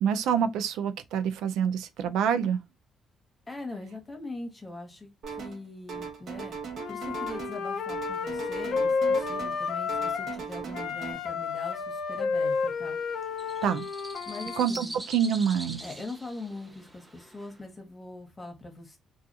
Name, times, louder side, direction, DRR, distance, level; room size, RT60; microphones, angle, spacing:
voice 1, 0.0-2.6 13.6-13.9 14.6-15.8, right 8 dB, 90° right, 0.4 m, -26 dB
voice 2, 3.5-6.6 6.9-13.0 14.3-15.1 15.8-19.0, left 2 dB, 20° left, 1.1 m, -42 dB
sound 1, 5.2-5.6 5.9-7.6 7.9-9.6 9.9-11.1, right 5 dB, 60° right, 0.9 m, -38 dB
Wind instrument woodwind instrument, 6.8-10.4 10.7-14.7, left 5 dB, 70° left, 0.4 m, -31 dB
sound 2, 12.4-17.6, right 1 dB, 20° right, 0.5 m, -44 dB
2.4 x 2.3 x 2.6 m
cardioid pair, 90°, 0 cm